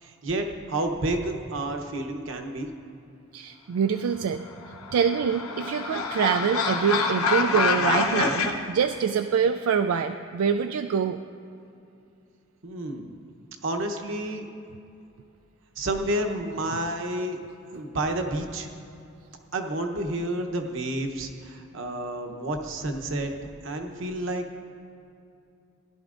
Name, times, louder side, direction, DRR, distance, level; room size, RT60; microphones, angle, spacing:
voice 1, 0.0-2.7 12.6-13.1 13.6-14.5 15.8-17.4 17.7-18.7 19.5-23.3 23.6-24.5, right 1 dB, 65° right, 4 dB, 0.9 m, -30 dB
voice 2, 3.3-4.4 4.9-11.2, right 7 dB, 80° right, 8 dB, 0.3 m, -25 dB
sound 1, 4.6-8.5, left 4 dB, 85° left, 0.8 m, -26 dB
16.5 x 11.5 x 2.5 m, 2.6 s
head